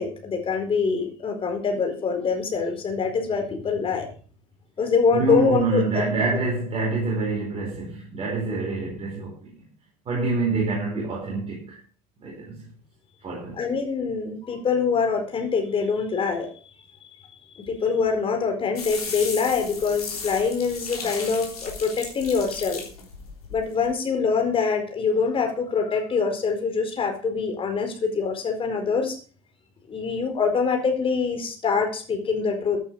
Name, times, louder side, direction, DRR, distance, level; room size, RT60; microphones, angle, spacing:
voice 1, 0.0-4.1 4.8-5.8 13.6-16.5 17.7-22.8 23.5-29.2 29.9-32.8, left 5 dB, 30° left, 4.3 m, -24 dB
voice 2, 5.1-9.7 10.0-11.8 12.2-12.7 13.2-13.6, right 3 dB, 30° right, 5.0 m, -26 dB
sound 1, 18.8-23.9, left 4 dB, 80° left, 3.6 m, -35 dB
15.0 x 9.1 x 4.8 m
figure-of-eight pair, 70°, 19 cm